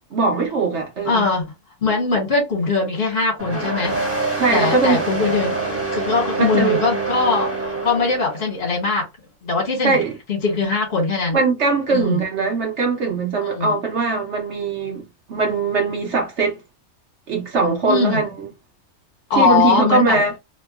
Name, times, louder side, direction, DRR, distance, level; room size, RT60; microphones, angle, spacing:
voice 1, 0.1-1.2 4.4-5.0 6.4-6.8 9.8-10.2 11.3-15.0 15.3-16.6 17.3-18.3 19.3-20.3, right 4 dB, 55° right, 1.0 m, -20 dB
voice 2, 1.0-1.4 1.8-4.0 4.5-9.1 9.4-10.0 10.3-11.4 11.9-12.2 13.4-13.7 17.8-18.2 19.3-20.2, left 4 dB, 45° left, 1.3 m, -21 dB
sound 1, 3.4-8.5, right 3 dB, 10° right, 0.7 m, -25 dB
2.9 x 2.2 x 2.3 m
omnidirectional pair, 1.6 m